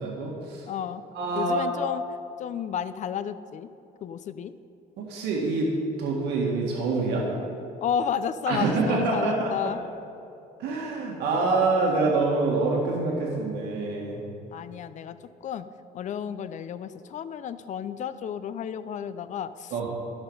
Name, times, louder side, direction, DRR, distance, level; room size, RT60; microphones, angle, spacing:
voice 1, 0.0-0.7 1.1-1.7 5.0-5.7 6.0-7.3 8.5-9.7 10.6-14.3 19.7-19.9, right 3 dB, 85° right, -2 dB, 1.7 m, -26 dB
voice 2, 0.7-1.0 1.4-2.0 2.4-3.7 4.0-4.5 7.8-9.8 14.5-15.2 15.4-15.7 15.9-19.9, left 8 dB, 45° left, 13 dB, 0.5 m, -32 dB
12.5 x 5.8 x 5.4 m, 2.7 s
cardioid pair, 110°, 17 cm